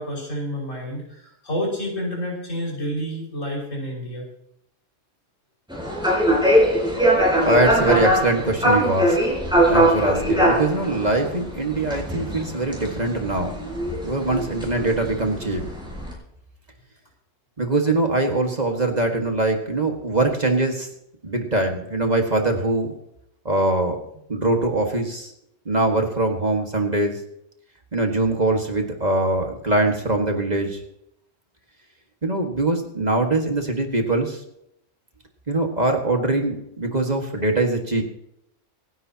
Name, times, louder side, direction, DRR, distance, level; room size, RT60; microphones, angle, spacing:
voice 1, 0.0-4.3, equal, 80° left, -3 dB, 6.0 m, -29 dB
sound 1, 5.7-16.1, equal, 5° right, 5.1 m, -22 dB
voice 2, 7.4-9.2 9.6-13.6 14.0-15.6 17.6-20.9 21.2-22.9 23.5-24.0 24.3-25.3 25.7-27.2 27.9-30.8 32.2-34.4 35.5-38.0, right 2 dB, 35° right, 3 dB, 1.9 m, -22 dB
26.0 x 10.5 x 2.9 m, 0.76 s
omnidirectional pair, 1.3 m